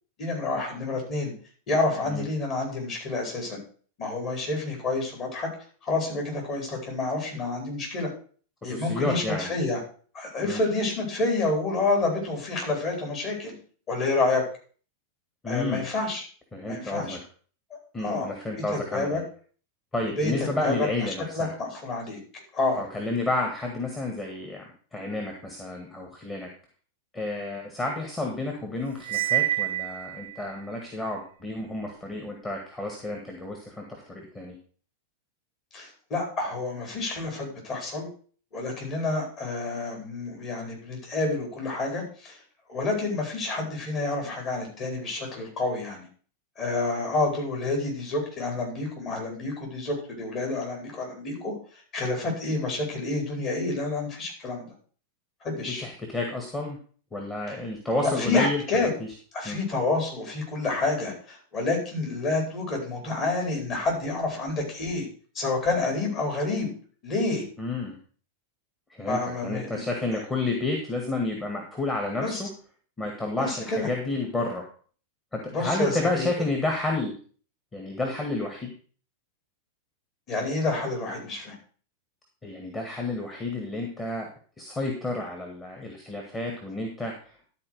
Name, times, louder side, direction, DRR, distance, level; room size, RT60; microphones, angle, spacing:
voice 1, 0.2-1.3 1.7-3.6 4.0-5.5 5.8-8.1 8.6-9.8 10.1-13.5 13.9-14.4 15.5-16.2 16.7-17.2 18.0-18.3 18.7-19.2 20.2-22.2 22.5-22.8 35.7-38.1 38.5-42.4 42.7-46.1 46.6-51.5 51.9-54.7 55.4-55.8 58.0-58.9 59.3-65.1 65.3-66.7 67.0-67.4 69.1-69.8 70.1-70.2 72.2-72.4 73.3-73.9 75.5-76.3 80.3-81.6, left 3 dB, 35° left, 0 dB, 4.8 m, -28 dB
voice 2, 8.6-9.5 10.4-10.6 15.4-15.8 16.5-17.2 17.9-19.2 19.9-21.5 22.8-24.6 24.9-26.5 27.1-34.6 55.7-56.8 57.1-59.1 59.4-59.6 67.6-68.0 68.9-72.5 73.0-74.6 75.3-77.1 77.7-78.7 82.4-84.3 84.6-87.5, left 2 dB, 15° left, 1 dB, 2.0 m, -31 dB
Cymbal, 29.0-30.5, right 14 dB, 60° right, 0.7 m, -27 dB
12.0 x 4.6 x 6.5 m, 0.43 s
figure-of-eight pair, 90°, 0 cm